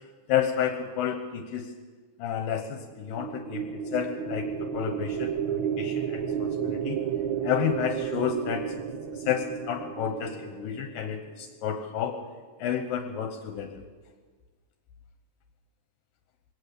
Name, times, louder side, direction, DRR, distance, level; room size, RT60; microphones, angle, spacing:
voice 1, 0.3-1.7 2.2-7.0 7.4-8.6 9.3-12.2 12.6-13.7, left 8 dB, 75° left, 6 dB, 2.7 m, -30 dB
sound 1, 2.9-11.4, right 8 dB, 65° right, 1.9 m, -32 dB
21.5 x 18.0 x 6.9 m, 1.4 s
omnidirectional pair, 4.2 m